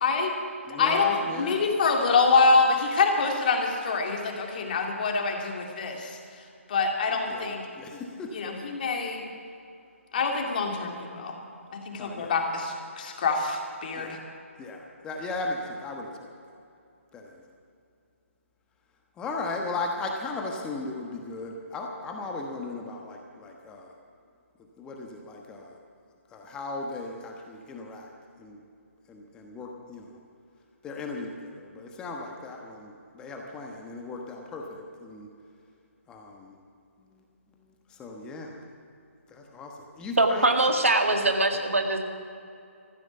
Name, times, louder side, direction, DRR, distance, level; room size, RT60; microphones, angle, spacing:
voice 1, 0.0-0.3 0.8-6.2 6.7-7.7 8.3-9.2 10.1-11.4 11.7-14.2, left 4 dB, 40° left, 2 dB, 2.3 m, -25 dB
voice 2, 0.7-1.6 7.3-8.3 12.0-12.4 14.0-14.2 14.6-16.1 17.1-17.4 19.2-23.9 24.8-25.8 26.3-28.1 28.4-28.6 29.1-30.2 30.8-35.3 36.1-36.5 37.9-38.6 39.3-40.5, left 3 dB, 10° left, 1 dB, 1.2 m, -37 dB
voice 3, 40.2-42.0, right 2 dB, 70° right, 4 dB, 1.9 m, -22 dB
14.5 x 13.5 x 7.1 m, 2.5 s
figure-of-eight pair, 140°, 7 cm